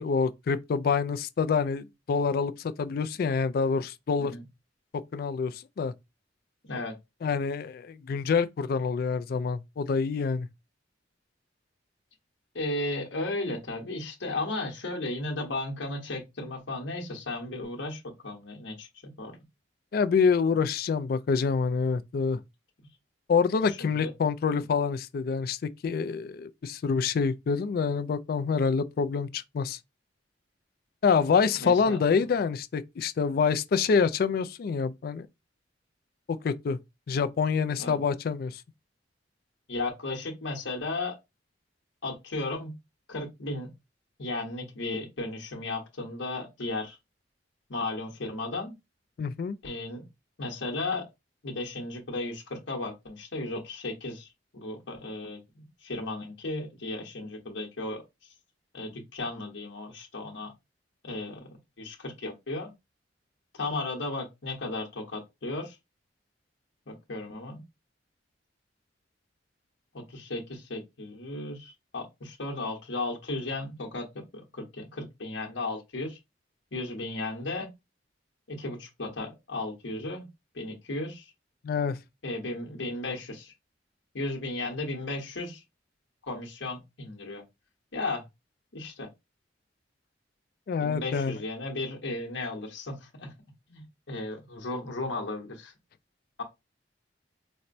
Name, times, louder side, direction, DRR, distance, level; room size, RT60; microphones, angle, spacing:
voice 1, 0.0-4.3 5.1-5.9 7.2-10.5 19.9-22.4 23.3-25.6 25.8-29.8 31.0-35.3 36.3-36.8 37.1-38.6 49.2-49.6 81.6-82.0 90.7-91.4, left 5 dB, 55° left, 0.3 m, -26 dB
voice 2, 12.5-19.3 23.7-24.1 24.5-24.6 31.6-32.3 37.8-38.0 39.7-41.2 42.0-42.8 43.1-43.7 44.2-47.0 47.7-48.7 49.6-50.1 50.4-51.0 51.4-54.3 54.5-58.0 58.7-60.5 61.0-61.5 61.8-62.7 63.5-65.8 66.9-67.6 69.9-74.1 74.3-76.2 76.7-77.7 78.5-80.3 80.5-81.2 82.2-83.5 84.1-85.6 86.2-87.4 87.9-88.2 88.7-89.1 90.8-93.3 93.7-95.7 96.4-96.5, left 2 dB, 90° left, 1.0 m, -35 dB
4.2 x 2.1 x 2.5 m
head